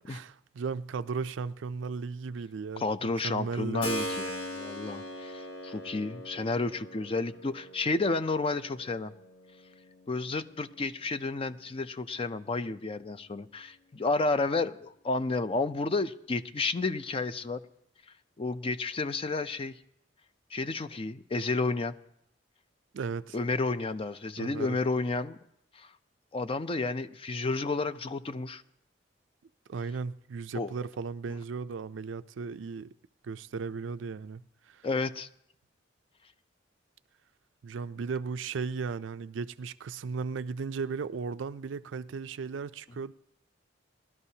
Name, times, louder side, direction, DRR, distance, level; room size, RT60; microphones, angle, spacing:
voice 1, 0.0-3.9 22.9-23.4 24.4-24.8 29.7-32.9 33.2-34.4 34.7-34.8 37.6-43.1, right 5 dB, 85° right, 0.4 m, -36 dB
voice 2, 2.8-9.1 10.1-17.6 18.4-19.7 20.5-21.9 23.3-25.4 25.8-25.9 26.3-28.6 30.5-30.7 34.8-35.3, left 3 dB, 30° left, 0.4 m, -31 dB
Keyboard (musical), 3.8-12.4, equal, 85° left, 1.4 m, -41 dB
19.0 x 12.0 x 2.8 m
head